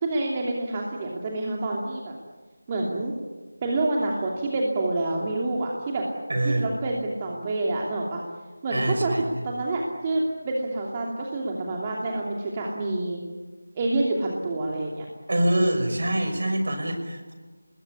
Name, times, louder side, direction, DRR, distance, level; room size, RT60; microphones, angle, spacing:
voice 1, 0.0-2.1 2.7-3.1 3.6-6.1 6.4-8.2 8.6-9.1 9.4-13.2 13.7-15.1, right 2 dB, 20° right, -1 dB, 2.8 m, -27 dB
voice 2, 6.3-6.7 8.7-9.2 15.3-17.3, right 1 dB, 50° right, 6 dB, 6.0 m, -25 dB
28.5 x 21.0 x 9.9 m, 1.3 s
figure-of-eight pair, 165°, 0 cm